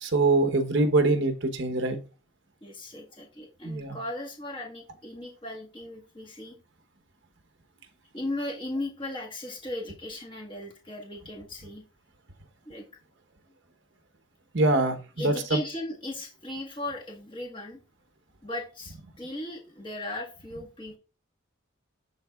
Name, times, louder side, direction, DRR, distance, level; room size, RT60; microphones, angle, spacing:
voice 1, 0.0-2.0 3.6-4.0 14.5-15.6, right 2 dB, 60° right, 7 dB, 0.9 m, -24 dB
voice 2, 2.6-6.6 8.1-11.8 12.6-12.8 15.2-17.8 18.4-21.0, left 1 dB, 25° left, -1 dB, 1.5 m, -37 dB
11.0 x 3.7 x 2.3 m, 0.34 s
head